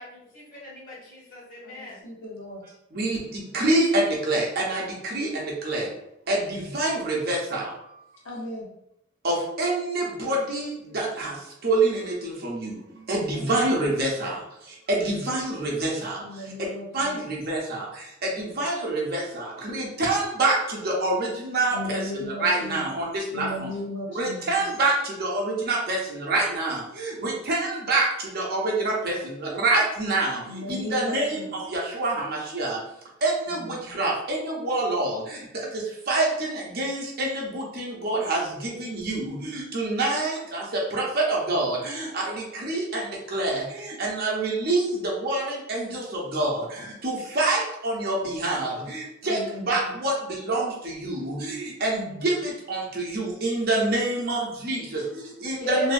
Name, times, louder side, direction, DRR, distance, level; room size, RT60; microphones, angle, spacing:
voice 1, 0.0-2.0 55.6-55.9, right 1 dB, 45° left, -6 dB, 1.1 m, -34 dB
voice 2, 1.6-2.6 8.2-8.7 13.3-13.7 16.2-17.2 21.7-23.1 23.3-24.5 30.5-31.5 33.5-33.7 49.2-49.7 51.8-52.2 55.7-55.9, left 1 dB, 65° left, -4 dB, 0.9 m, -35 dB
voice 3, 2.9-4.8 5.1-5.9 6.3-7.7 9.2-10.7 10.9-11.3 11.6-12.7 13.1-14.3 14.9-16.2 16.9-17.9 18.4-20.6 20.8-23.5 24.1-24.9 25.2-28.1 28.3-29.1 29.4-30.4 30.7-31.4 31.7-32.8 33.2-35.2 35.7-40.6 40.9-43.0 43.3-43.6 44.0-46.0 46.3-46.6 47.0-49.4 49.7-50.1 50.5-55.0 55.4-55.9, right 2 dB, 50° right, -2 dB, 0.7 m, -26 dB
2.6 x 2.4 x 2.4 m, 0.80 s
head